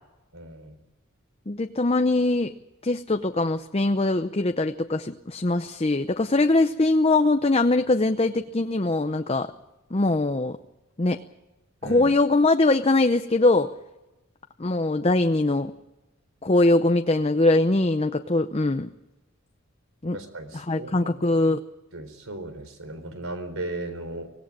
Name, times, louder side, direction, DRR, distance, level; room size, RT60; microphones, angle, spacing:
voice 1, 0.3-0.8 11.8-12.1 20.1-21.1 21.9-24.3, right 2 dB, 85° right, 9 dB, 4.0 m, -36 dB
voice 2, 1.5-2.5 2.8-9.5 9.9-10.6 11.0-11.2 11.8-13.7 14.6-15.7 16.4-18.9 20.0-20.2 20.5-21.6, left 2 dB, 30° left, 8 dB, 0.7 m, -22 dB
24.5 x 18.0 x 7.5 m, 1.0 s
head